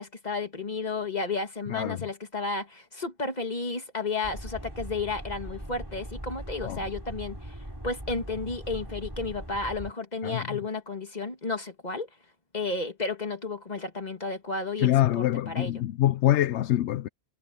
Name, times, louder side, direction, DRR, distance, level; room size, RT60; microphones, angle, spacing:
voice 1, 0.0-7.6 7.8-12.1 12.5-15.8, left 3 dB, 40° left, 2.4 m, -32 dB
voice 2, 1.7-2.0 6.6-6.8 10.2-10.6 14.8-17.1, left 13 dB, 85° left, 0.9 m, -25 dB
sound 1, 4.2-9.9, right 1 dB, 20° right, 4.4 m, -40 dB
omnidirectional pair, 1.1 m